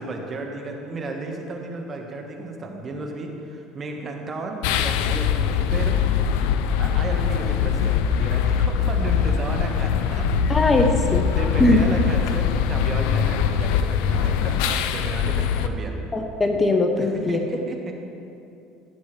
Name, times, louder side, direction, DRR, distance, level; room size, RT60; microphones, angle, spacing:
voice 1, 0.0-6.0 6.8-10.3 11.3-15.9 17.0-18.1, right 2 dB, 35° right, 2 dB, 1.4 m, -33 dB
sound 1, 4.6-15.7, left 7 dB, 80° left, 0.4 m, -22 dB
voice 2, 10.5-11.3 11.6-11.8 16.1-17.4, left 2 dB, 20° left, 4 dB, 0.8 m, -20 dB
15.0 x 8.0 x 3.3 m, 2.7 s
supercardioid pair, 95°, 0 cm